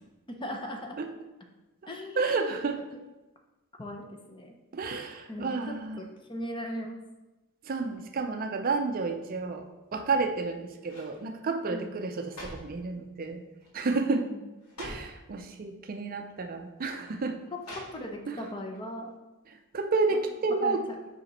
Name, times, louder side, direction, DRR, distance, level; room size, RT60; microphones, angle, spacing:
voice 1, 0.3-1.0 1.9-2.6 3.8-4.6 5.3-7.0 11.7-11.9 14.1-14.4 17.7-19.1 20.1-20.2 20.6-20.8, equal, 20° left, 2 dB, 0.7 m, -39 dB
voice 2, 2.2-2.8 4.7-6.0 7.6-13.4 13.7-14.3 14.8-17.4 18.3-18.4 19.5-20.8, right 3 dB, 40° right, 5 dB, 0.4 m, -31 dB
sound 1, 10.1-10.4 10.8-11.2 12.0-12.8 13.6-13.9 14.1-14.2 14.6-15.2 16.1-16.2 17.6-18.3 18.7-18.8, equal, 80° left, 2.1 m, -44 dB
5.5 x 5.0 x 4.2 m, 1.1 s
head